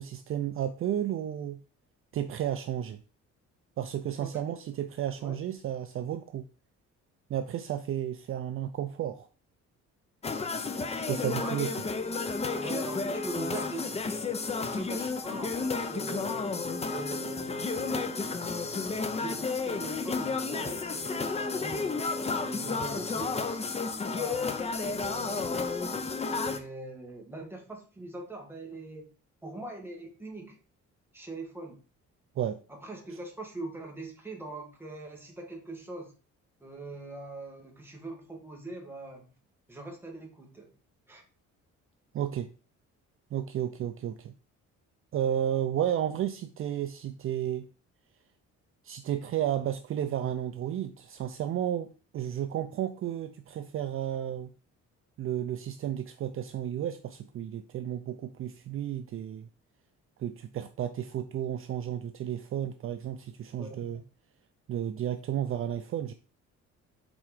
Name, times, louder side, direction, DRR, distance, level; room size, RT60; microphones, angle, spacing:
voice 1, 0.0-1.6 2.1-3.0 3.8-6.5 7.3-9.3 11.0-11.7 32.4-32.6 42.1-42.5 43.3-44.3 45.1-47.7 48.8-54.5 55.2-59.5 60.2-64.0 64.7-66.1, right 10 dB, 45° right, 9 dB, 0.5 m, -32 dB
sound 1, 10.2-26.6, left 4 dB, 20° left, 0.6 m, -32 dB
voice 2, 11.4-11.8 12.5-14.3 14.6-18.9 19.2-23.3 24.2-25.8 26.3-29.1 29.4-30.6 31.1-31.8 32.7-36.1 36.6-39.3 39.7-40.7 41.1-41.2 63.6-64.0, right 2 dB, 10° right, 1 dB, 1.6 m, -42 dB
6.2 x 4.4 x 4.9 m, 0.37 s
cardioid pair, 150°, 29 cm